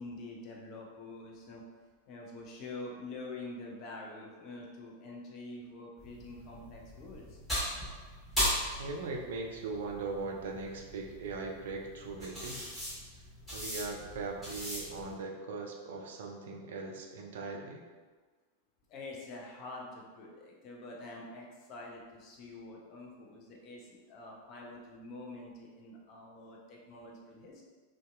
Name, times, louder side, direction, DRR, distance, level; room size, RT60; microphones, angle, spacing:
voice 1, 0.0-1.6 2.1-7.4 18.9-27.7, left 2 dB, 35° left, -1 dB, 0.5 m, -46 dB
sound 1, 6.0-15.1, equal, 10° left, 1.3 m, -38 dB
voice 2, 8.8-12.6 13.5-17.8, right 3 dB, 60° right, 2 dB, 0.3 m, -39 dB
2.6 x 2.2 x 2.3 m, 1.4 s
figure-of-eight pair, 90°, 0 cm